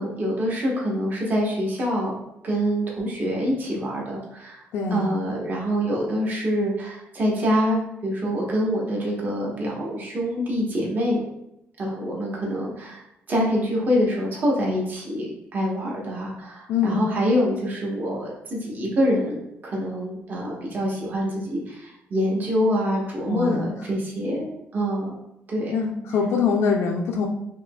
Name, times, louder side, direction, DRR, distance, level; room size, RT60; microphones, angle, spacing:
voice 1, 0.0-2.2 2.4-4.6 4.9-11.2 11.8-25.2 25.5-25.8, equal, 40° right, -3 dB, 1.1 m, -25 dB
voice 2, 4.7-5.1 16.7-17.0 23.3-24.0 25.7-27.3, left 5 dB, 75° left, 0 dB, 0.5 m, -24 dB
4.8 x 2.8 x 2.3 m, 0.82 s
cardioid pair, 115°, 5 cm